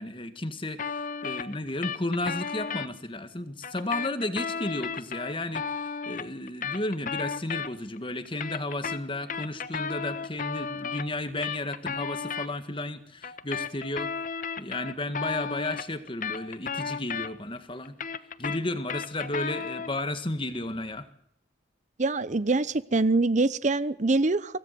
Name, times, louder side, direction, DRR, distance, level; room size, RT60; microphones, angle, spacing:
voice 1, 0.0-14.1 14.6-18.0 18.4-21.1, left 1 dB, 30° left, 10 dB, 1.7 m, -33 dB
sound 1, 0.8-2.9 3.6-8.0 8.3-12.5 13.2-17.6 17.9-20.0, left 6 dB, 45° left, 1.1 m, -34 dB
voice 2, 22.0-24.6, right 3 dB, 40° right, 16 dB, 0.7 m, -24 dB
25.0 x 17.0 x 6.8 m, 0.75 s
head